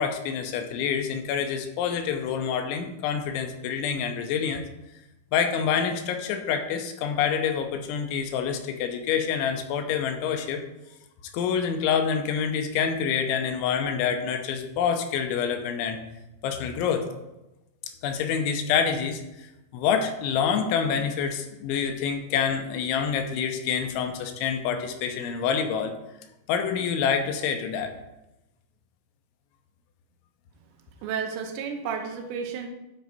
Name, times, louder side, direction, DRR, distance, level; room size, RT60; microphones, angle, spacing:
voice 1, 0.0-4.6 5.3-10.6 11.3-16.0 16.4-17.1 18.0-19.2 19.7-25.9 26.5-27.9, left 7 dB, 85° left, 5 dB, 3.2 m, -27 dB
voice 2, 31.0-32.7, right 6 dB, 80° right, 5 dB, 3.0 m, -32 dB
12.5 x 4.8 x 4.1 m, 0.95 s
omnidirectional pair, 5.3 m